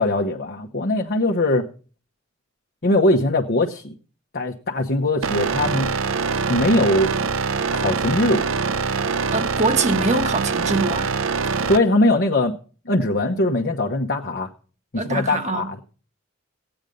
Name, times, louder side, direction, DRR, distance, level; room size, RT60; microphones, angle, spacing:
voice 1, 0.0-1.7 2.8-3.9 4.3-5.9 6.5-7.1 7.7-8.4 11.7-12.6 12.9-14.5 14.9-15.8, left 1 dB, 55° left, 1.1 m, -21 dB
sound 1, 5.2-11.8, right 5 dB, 85° right, 0.7 m, -24 dB
voice 2, 9.3-11.1 15.0-15.7, right 3 dB, 35° right, 1.4 m, -23 dB
16.5 x 9.0 x 5.2 m
head